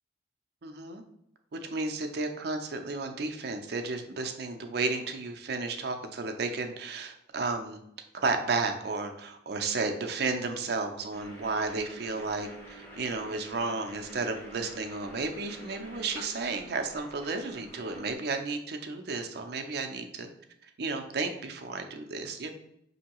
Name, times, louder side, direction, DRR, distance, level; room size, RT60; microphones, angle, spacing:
voice 1, 0.6-1.0 1.5-7.8 8.1-20.3 20.8-22.5, right 3 dB, 65° right, 5 dB, 0.5 m, -33 dB
sound 1, 11.1-18.1, right 1 dB, 10° left, 0.9 m, -48 dB
5.3 x 2.8 x 2.9 m, 0.78 s
head